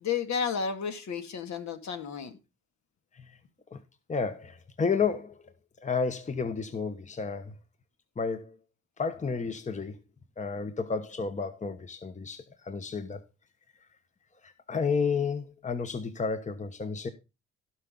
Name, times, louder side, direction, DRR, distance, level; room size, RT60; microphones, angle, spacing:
voice 1, 0.0-2.4, left 6 dB, 65° left, 2.2 m, -32 dB
voice 2, 4.1-5.5 5.8-7.6 8.2-8.6 9.0-10.0 10.4-13.2 14.4-17.1, left 5 dB, 25° left, 1.1 m, -31 dB
16.0 x 5.8 x 3.8 m
cardioid pair, 90°, 30 cm